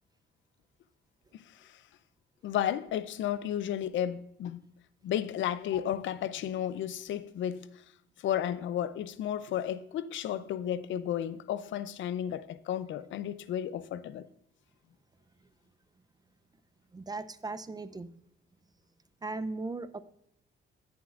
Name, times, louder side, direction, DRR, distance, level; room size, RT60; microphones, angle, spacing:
voice 1, 1.3-1.8 2.4-4.7 5.0-7.8 8.2-14.2, left 10 dB, 75° left, 0.5 m, -33 dB
voice 2, 16.9-18.1 19.2-20.0, right 3 dB, 20° right, 0.5 m, -37 dB
14.5 x 7.1 x 2.5 m
cardioid pair, 90°, 20 cm